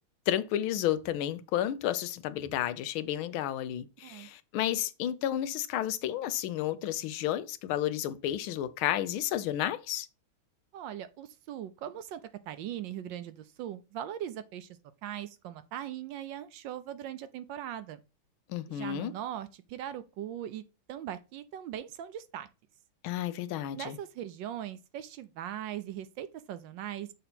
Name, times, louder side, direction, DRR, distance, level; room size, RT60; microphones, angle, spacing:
voice 1, 0.3-10.1 18.5-19.1 23.0-24.0, left 12 dB, 85° left, 1.5 m, -31 dB
voice 2, 10.7-12.2 12.5-18.0 18.7-20.6 20.9-22.5 23.7-27.1, right 11 dB, 75° right, 1.2 m, -40 dB
6.6 x 2.9 x 5.8 m
omnidirectional pair, 2.2 m